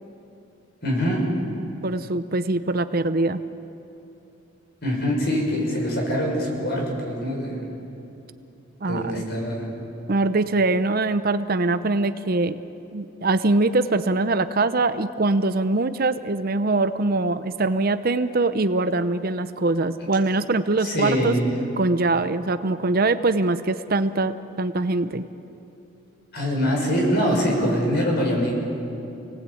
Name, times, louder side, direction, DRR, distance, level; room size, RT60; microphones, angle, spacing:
voice 1, 0.8-1.3 4.8-7.7 8.8-9.7 20.8-21.5 26.3-28.5, equal, 50° left, 0 dB, 6.3 m, -24 dB
voice 2, 1.8-3.4 8.8-9.2 10.1-12.6 12.9-21.4 21.8-25.2, right 2 dB, 45° right, 11 dB, 0.7 m, -23 dB
28.5 x 19.0 x 8.6 m, 2.8 s
head